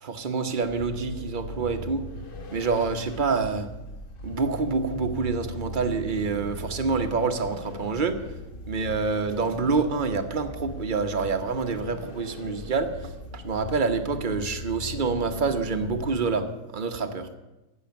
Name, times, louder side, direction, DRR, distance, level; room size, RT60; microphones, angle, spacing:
voice 1, 0.0-2.0 2.5-3.7 4.2-8.2 8.7-16.4 16.7-17.3, right 4 dB, 35° right, 6 dB, 1.2 m, -27 dB
Vehicle, 0.6-16.6, left 1 dB, 40° left, 1.3 m, -39 dB
16.0 x 6.9 x 9.5 m, 1.0 s
omnidirectional pair, 1.6 m